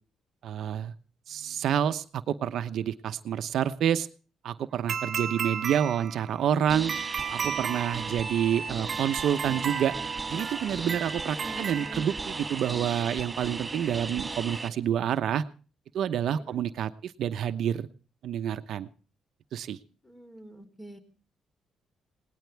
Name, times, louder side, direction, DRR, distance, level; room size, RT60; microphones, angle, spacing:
voice 1, 0.4-0.9 1.3-4.1 4.4-6.9 7.3-9.9 10.3-15.4 15.9-17.9 18.2-18.9 19.5-19.8, right 9 dB, 70° right, 11 dB, 0.9 m, -28 dB
sound 1, 4.9-12.6, right 7 dB, 55° right, 1.3 m, -35 dB
sound 2, 6.7-14.7, right 3 dB, 25° right, 2.6 m, -36 dB
voice 2, 11.0-12.1 16.3-16.6 20.0-21.0, right 1 dB, 20° left, 8 dB, 4.2 m, -47 dB
20.0 x 18.5 x 3.4 m, 0.37 s
cardioid pair, 90°, 0 cm